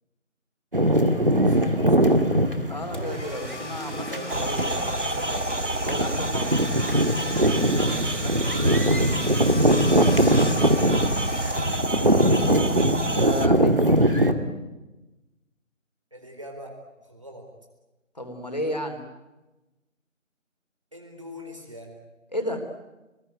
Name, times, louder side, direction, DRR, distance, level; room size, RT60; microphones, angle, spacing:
voice 1, 0.7-2.6 4.1-5.5 16.1-16.8 17.1-17.4 20.9-21.9, equal, 25° right, 2 dB, 4.0 m, -41 dB
sound 1, 0.7-14.3, right 1 dB, 40° right, 2.4 m, -22 dB
voice 2, 2.7-4.7 5.8-6.7 7.7-9.2 13.1-13.9 18.2-19.0 22.3-22.6, left 1 dB, 30° left, 5 dB, 3.5 m, -33 dB
Domestic sounds home sounds, 2.9-12.1, left 1 dB, 60° left, 4.0 m, -38 dB
sound 2, 4.3-13.5, right 2 dB, 60° right, 1.7 m, -29 dB
28.5 x 21.0 x 9.4 m, 1.1 s
figure-of-eight pair, 175°, 40 cm